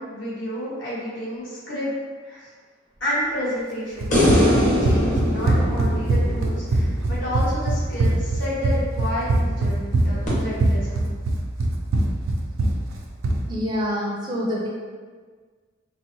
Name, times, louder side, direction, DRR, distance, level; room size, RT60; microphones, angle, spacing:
voice 1, 0.0-1.9 2.2-2.4 3.0-11.1, equal, 70° left, -9 dB, 1.3 m, -30 dB
Run, 4.0-13.4, right 2 dB, 90° right, 0.4 m, -22 dB
sound 1, 4.1-7.4 10.3-10.4, left 1 dB, 40° left, 0.9 m, -22 dB
voice 2, 13.5-14.7, equal, 20° right, -4 dB, 0.4 m, -26 dB
3.7 x 2.0 x 2.7 m, 1.5 s
head